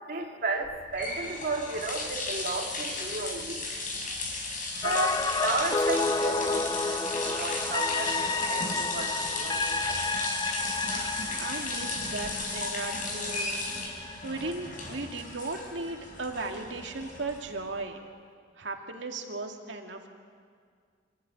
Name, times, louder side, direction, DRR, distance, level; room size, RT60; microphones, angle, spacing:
voice 1, 0.0-3.7 4.8-10.0, right 3 dB, 55° right, 0 dB, 1.9 m, -34 dB
sound 1, 0.6-17.7, left 2 dB, 45° left, 5.0 m, -35 dB
sound 2, 4.8-14.9 15.2-15.3, left 3 dB, 20° left, 0.7 m, -31 dB
voice 2, 11.4-13.6 14.2-18.0 18.6-20.1, right 3 dB, 80° right, 3 dB, 2.2 m, -36 dB
27.0 x 14.5 x 9.4 m, 2.1 s
head